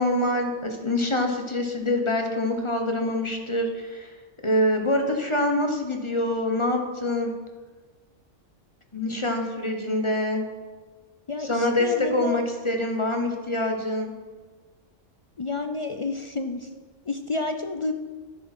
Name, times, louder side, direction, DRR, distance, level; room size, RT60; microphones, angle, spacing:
voice 1, 0.0-4.1 4.4-7.3 8.9-10.4 11.4-14.1, left 1 dB, 25° left, 4 dB, 1.1 m, -25 dB
voice 2, 11.3-12.4 15.4-16.7 17.1-17.9, left 3 dB, 55° left, 6 dB, 0.3 m, -30 dB
11.0 x 10.0 x 4.4 m, 1.4 s
omnidirectional pair, 1.3 m